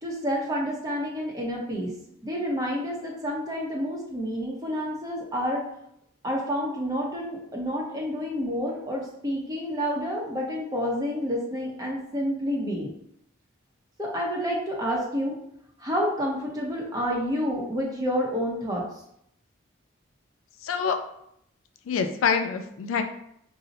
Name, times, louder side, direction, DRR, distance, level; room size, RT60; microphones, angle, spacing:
voice 1, 0.0-1.9 2.2-5.6 6.2-12.9 14.0-15.3 15.8-18.8, equal, 20° right, -2 dB, 0.6 m, -29 dB
voice 2, 20.6-21.0 21.9-23.0, left 6 dB, 80° left, 7 dB, 0.3 m, -25 dB
2.7 x 2.0 x 3.9 m, 0.73 s
head